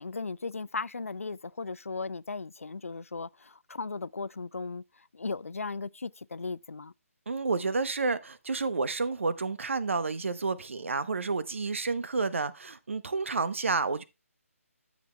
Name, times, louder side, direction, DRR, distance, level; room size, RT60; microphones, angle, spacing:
voice 1, 0.0-4.8 5.1-6.9, left 4 dB, 70° left, 0.4 m, -36 dB
voice 2, 7.3-14.0, right 4 dB, 55° right, 0.8 m, -30 dB
13.0 x 7.4 x 2.3 m
figure-of-eight pair, 145°, 8 cm